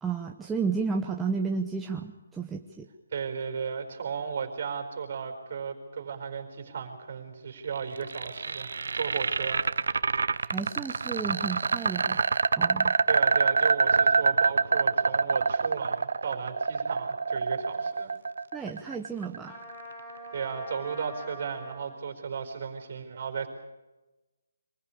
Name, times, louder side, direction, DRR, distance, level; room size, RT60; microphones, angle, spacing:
voice 1, 0.0-2.9 10.4-12.2 12.6-12.9 18.5-19.5, right 5 dB, 5° right, 1 dB, 0.8 m, -32 dB
voice 2, 3.1-9.6 13.1-18.1 20.3-23.5, right 6 dB, 45° right, 6 dB, 4.7 m, -35 dB
sound 1, 7.7-19.8, right 4 dB, 70° right, 0.8 m, -26 dB
Trumpet, 19.4-22.0, equal, 15° left, 3.3 m, -44 dB
24.0 x 15.5 x 8.6 m, 1.1 s
hypercardioid pair, 165°, 0 cm